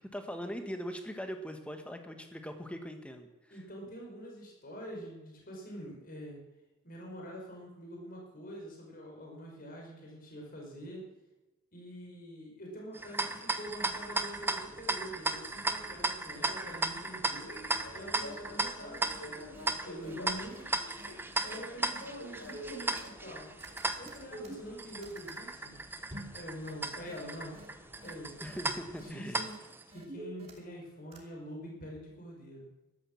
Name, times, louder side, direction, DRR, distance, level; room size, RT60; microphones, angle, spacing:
voice 1, 0.1-3.3 28.4-29.4, equal, 5° left, 6 dB, 1.6 m, -40 dB
voice 2, 3.5-6.4 6.8-11.1 11.7-17.5 17.9-20.7 21.4-23.5 24.0-25.7 26.3-27.6 28.0-28.3 29.0-29.6 29.9-32.7, equal, 40° left, -1 dB, 5.0 m, -45 dB
sound 1, 12.9-29.8, right 2 dB, 10° right, 0.8 m, -36 dB
Fixed-wing aircraft airplane, 13.7-29.0, left 1 dB, 75° left, 3.8 m, -52 dB
sound 2, 19.1-19.2 19.5-19.7 20.0-20.1 20.5-20.6 21.0-21.1 21.4-21.6 21.9-22.0 22.4-23.3 23.6-25.4 26.1-26.4 26.7-26.8 27.1-27.2 27.5-27.7 28.0-28.1 28.5-28.6 29.0-29.1 29.4-29.6 29.9-30.8 31.1-31.2, right 1 dB, 30° right, 2.6 m, -47 dB
13.0 x 12.5 x 7.3 m, 1.1 s
head